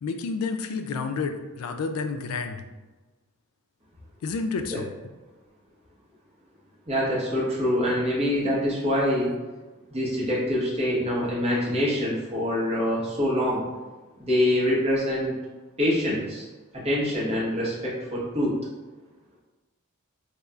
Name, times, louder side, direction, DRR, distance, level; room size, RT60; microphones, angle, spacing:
voice 1, 0.0-2.6 4.2-4.9, left 4 dB, 85° left, 8 dB, 0.3 m, -30 dB
voice 2, 6.9-9.3 9.9-13.6 14.2-15.3 15.8-16.4 16.8-18.6, left 1 dB, 30° right, -6 dB, 1.0 m, -25 dB
5.1 x 2.3 x 2.2 m, 1.2 s
head